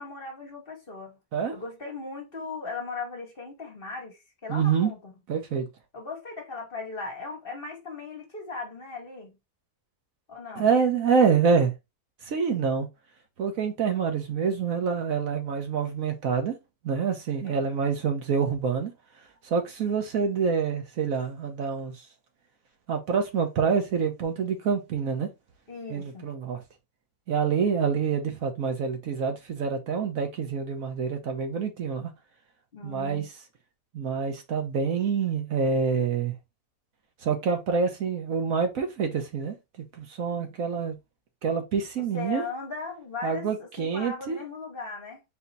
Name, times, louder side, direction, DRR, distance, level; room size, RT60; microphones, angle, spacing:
voice 1, 0.0-1.2 1.5-5.1 5.9-9.4 10.3-10.7 17.4-17.8 25.7-26.3 32.7-33.3 40.4-40.5 42.1-45.2, left 4 dB, 40° left, 1.4 m, -38 dB
voice 2, 4.5-4.9 5.3-5.7 10.6-11.7 12.2-12.9 13.4-16.5 16.8-18.9 19.4-21.9 22.9-25.3 25.9-26.6 27.3-32.1 32.8-33.3 33.9-36.3 37.2-41.0 41.4-42.4 43.2-44.4, right 6 dB, 70° right, 1.3 m, -26 dB
4.2 x 2.8 x 3.9 m
omnidirectional pair, 1.5 m